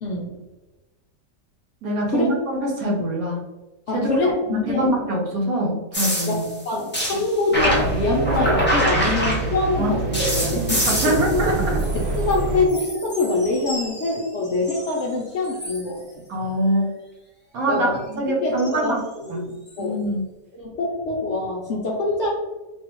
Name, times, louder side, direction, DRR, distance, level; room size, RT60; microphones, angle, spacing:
voice 1, 0.0-0.4 2.1-2.3 3.9-4.9 6.3-6.4 6.6-11.4 11.9-16.0 17.7-18.9 19.2-19.5 19.8-20.0 20.5-22.3, left 2 dB, 65° left, -3 dB, 0.7 m, -24 dB
voice 2, 1.8-3.4 3.9-6.5 7.1-7.2 9.8-9.9 10.2-10.6 11.0-11.8 16.3-16.9 17.5-19.0 19.3-19.5 19.8-20.2, right 1 dB, 60° right, -1 dB, 1.1 m, -24 dB
sound 1, 5.9-9.8 10.1-12.4 12.7-15.0 15.4-15.9 18.6-18.8 19.7-19.8, equal, 15° left, 0.4 m, -26 dB
sound 2, 7.5-12.7, right 3 dB, 85° right, 1.2 m, -26 dB
3.3 x 2.3 x 2.9 m, 1.1 s
omnidirectional pair, 1.8 m